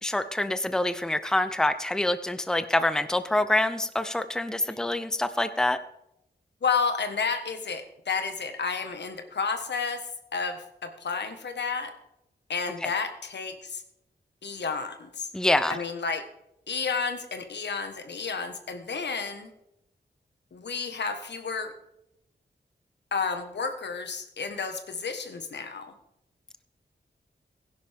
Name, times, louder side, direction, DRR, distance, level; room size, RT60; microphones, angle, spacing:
voice 1, 0.0-5.8 15.3-15.8, left 1 dB, 5° left, 11 dB, 0.7 m, -26 dB
voice 2, 6.6-11.9 12.5-13.8 14.4-15.3 15.7-16.2 16.7-19.5 20.5-21.7 23.1-25.9, left 5 dB, 80° left, 7 dB, 1.5 m, -31 dB
16.5 x 10.5 x 3.6 m, 0.83 s
cardioid pair, 65°, 18 cm